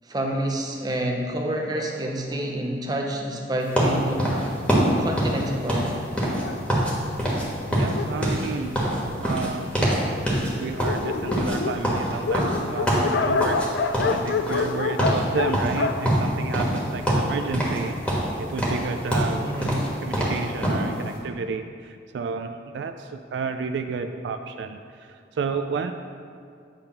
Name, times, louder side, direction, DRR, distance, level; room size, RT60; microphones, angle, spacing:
voice 1, 0.1-4.3 5.0-5.9 19.4-19.8, right 1 dB, 20° right, 0 dB, 0.7 m, -28 dB
sound 1, 3.8-6.9 7.2-7.5 7.7-10.0 10.3-10.5 10.8-13.7 13.9-14.7 15.0-15.2 15.5-16.8 17.1-17.8 18.1-20.9, right 1 dB, 5° left, 1.4 m, -24 dB
Dog, 6.3-9.3 10.0-10.1 10.4-10.5 10.7-17.1, left 4 dB, 65° left, 0.3 m, -28 dB
voice 2, 7.7-8.8 9.2-9.9 10.6-19.5 20.0-25.9, right 5 dB, 70° right, 7 dB, 0.3 m, -31 dB
8.9 x 3.4 x 5.7 m, 2.3 s
head